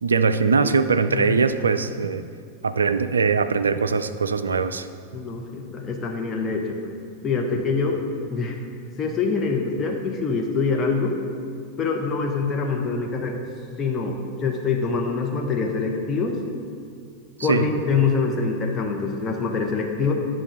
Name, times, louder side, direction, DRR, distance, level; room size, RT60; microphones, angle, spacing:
voice 1, 0.0-2.2 2.6-4.9 17.5-17.7, right 5 dB, 75° right, 11 dB, 0.3 m, -21 dB
voice 2, 5.1-6.8 7.2-8.0 8.3-8.6 9.0-11.2 11.8-13.4 13.8-16.4 17.4-20.1, left 4 dB, 25° left, 1 dB, 0.9 m, -25 dB
9.9 x 3.8 x 6.2 m, 2.2 s
figure-of-eight pair, 90°, 0 cm